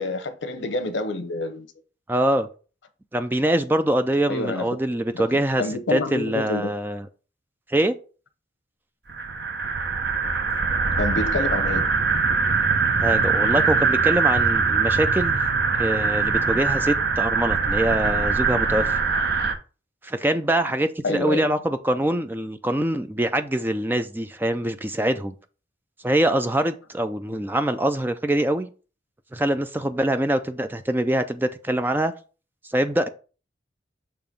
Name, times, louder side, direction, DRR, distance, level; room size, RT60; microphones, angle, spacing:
voice 1, 0.0-1.7 4.3-4.7 5.1-6.7 11.0-11.9 21.0-21.5, left 2 dB, 80° left, 0.9 m, -28 dB
voice 2, 2.1-2.5 3.1-5.6 5.9-7.0 7.7-8.0 13.0-15.4 15.8-19.0 20.0-25.3 26.0-28.7 29.3-32.1 32.6-33.1, right 1 dB, 10° right, 0.4 m, -24 dB
sound 1, 9.1-19.5, right 5 dB, 60° right, 0.8 m, -22 dB
6.8 x 3.0 x 5.2 m
head